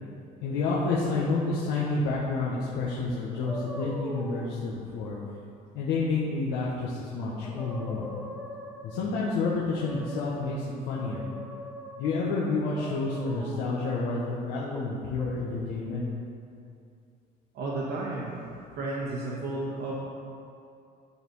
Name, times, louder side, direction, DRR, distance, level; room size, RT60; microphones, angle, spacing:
voice 1, 0.4-5.2 5.7-8.1 8.8-11.2 12.0-16.0, left 3 dB, 90° left, -6 dB, 1.2 m, -29 dB
sound 1, 3.4-4.5 7.0-7.1 7.4-9.1 9.7-10.5 10.9-12.3 12.8-13.8 14.7-15.3, equal, ahead, 0.8 m, -41 dB
voice 2, 17.5-18.4 18.8-19.9, right 2 dB, 65° right, -4 dB, 1.4 m, -32 dB
11.0 x 4.2 x 5.5 m, 2.5 s
cardioid pair, 145°, 18 cm